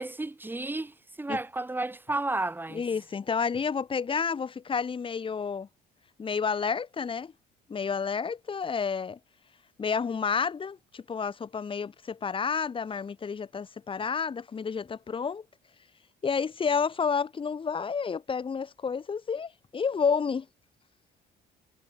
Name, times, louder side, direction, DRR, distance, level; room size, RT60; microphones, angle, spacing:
voice 1, 0.0-2.8, right 2 dB, 10° right, 2.6 m, -32 dB
voice 2, 2.7-5.7 6.2-7.3 7.7-9.2 9.8-15.4 16.2-20.5, left 6 dB, 30° left, 2.4 m, -30 dB
cardioid pair, 110°, 17 cm